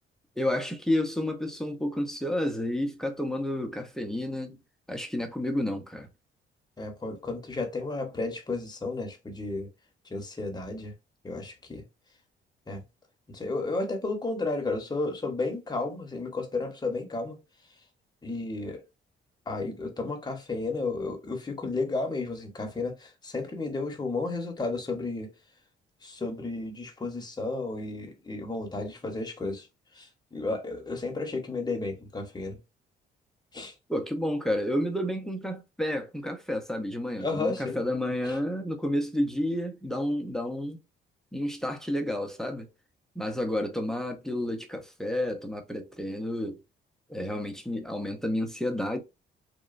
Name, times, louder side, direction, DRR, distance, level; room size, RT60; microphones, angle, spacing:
voice 1, 0.4-4.6 4.9-6.1 33.9-40.8 41.3-42.7 43.2-46.6 47.1-49.0, left 1 dB, ahead, 0.6 m, -30 dB
voice 2, 6.8-9.7 10.1-10.9 11.2-11.8 12.7-12.8 13.3-17.4 18.2-18.8 19.5-25.3 26.0-29.7 29.9-32.6 33.5-33.7 37.2-37.8 38.2-38.3, left 3 dB, 20° left, 0.9 m, -33 dB
2.9 x 2.2 x 2.4 m
cardioid pair, 90°, 20 cm